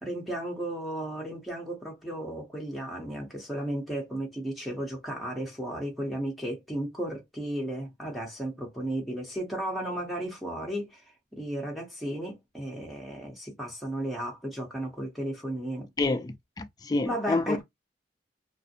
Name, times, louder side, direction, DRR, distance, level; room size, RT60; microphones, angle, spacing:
voice 1, 0.0-11.0 11.3-15.9 17.0-17.6, right 1 dB, ahead, 0.8 m, -34 dB
voice 2, 16.0-17.6, left 2 dB, 20° left, 0.3 m, -28 dB
2.5 x 2.1 x 2.7 m
head